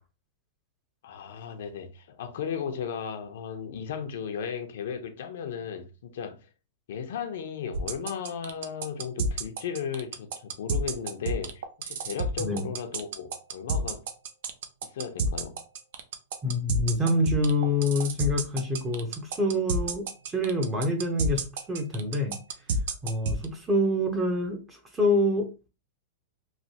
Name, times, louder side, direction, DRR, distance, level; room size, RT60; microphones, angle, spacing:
voice 1, 1.0-6.5 6.9-14.0 14.8-15.6, left 7 dB, 70° left, 0.6 m, -35 dB
sound 1, 7.7-23.4, right 3 dB, 65° right, 0.5 m, -29 dB
voice 2, 16.4-22.4 23.0-25.7, left 1 dB, 15° right, 0.8 m, -26 dB
3.2 x 2.2 x 2.8 m
hypercardioid pair, 135°, 0 cm